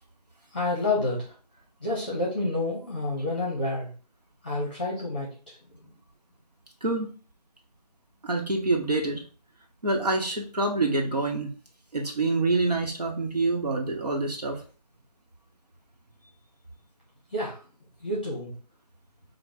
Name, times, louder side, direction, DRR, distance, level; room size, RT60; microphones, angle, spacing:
voice 1, 0.5-1.3 1.8-3.9 4.4-5.6 5.8-5.9 17.3-17.6 18.0-18.5, left 2 dB, 10° left, -5 dB, 1.0 m, -29 dB
voice 2, 8.2-9.2 9.8-11.5 11.9-14.6, right 2 dB, 70° right, 0 dB, 1.4 m, -26 dB
4.9 x 2.5 x 3.6 m, 0.37 s
figure-of-eight pair, 175°, 21 cm